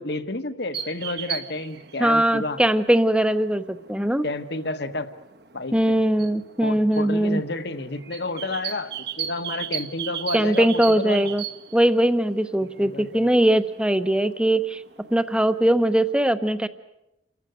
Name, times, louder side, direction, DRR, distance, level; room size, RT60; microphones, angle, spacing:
voice 1, 0.0-2.6 4.2-5.1 5.5-6.0 6.6-11.3 12.8-13.3, left 2 dB, 55° left, 10 dB, 1.4 m, -30 dB
sound 1, 0.7-16.1, right 9 dB, 55° right, 1.3 m, -38 dB
voice 2, 2.0-4.3 5.7-7.4 10.3-11.4 11.7-14.8 15.1-16.7, right 1 dB, 5° right, 11 dB, 0.8 m, -21 dB
29.0 x 14.5 x 9.3 m, 0.89 s
head